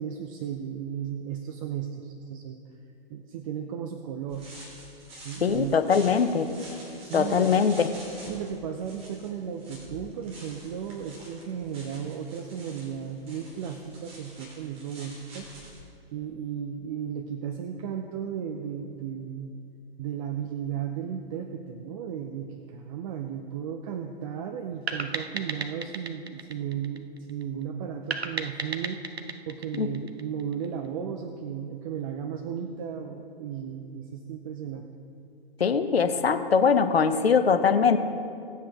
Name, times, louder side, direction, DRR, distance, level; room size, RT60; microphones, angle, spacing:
voice 1, 0.0-2.7 3.1-4.5 5.2-5.8 7.0-7.6 8.3-15.5 16.1-19.5 20.0-29.0 29.5-34.9, right 8 dB, 35° right, 6 dB, 0.6 m, -35 dB
sound 1, 4.3-15.8, equal, 20° right, 2.5 m, -47 dB
voice 2, 5.4-6.5 7.1-7.9 29.8-29.9 35.6-38.0, left 6 dB, 75° left, 10 dB, 0.9 m, -22 dB
sound 2, 24.9-27.4 28.1-30.7, right 4 dB, 90° right, 0.8 m, -35 dB
18.5 x 7.6 x 3.5 m, 2.5 s
figure-of-eight pair, 115°, 31 cm